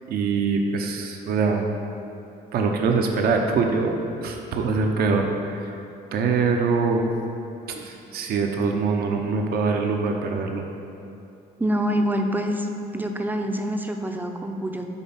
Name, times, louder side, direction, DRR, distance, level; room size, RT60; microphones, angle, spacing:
voice 1, 0.1-1.7 2.5-3.9 4.2-5.8 6.1-7.1 7.8-10.6, right 4 dB, 65° right, 3 dB, 0.7 m, -23 dB
voice 2, 7.7-8.2 11.6-14.9, equal, 10° right, 4 dB, 0.5 m, -26 dB
8.2 x 3.4 x 5.7 m, 2.7 s
cardioid pair, 110°, 17 cm